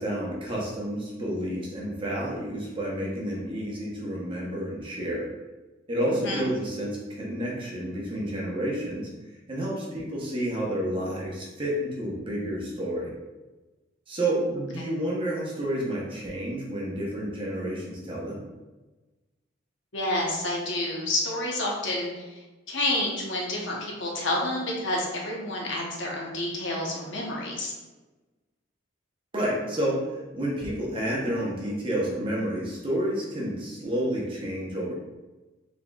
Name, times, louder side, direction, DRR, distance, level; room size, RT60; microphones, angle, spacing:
voice 1, 0.0-5.3 5.9-9.1 9.5-13.1 14.1-18.4 29.3-30.0 30.3-34.9, right 1 dB, 25° right, -4 dB, 0.8 m, -30 dB
voice 2, 6.1-6.5 14.8-14.9 19.9-27.7, left 1 dB, 70° left, -2 dB, 0.9 m, -29 dB
4.3 x 3.5 x 2.3 m, 1.2 s
head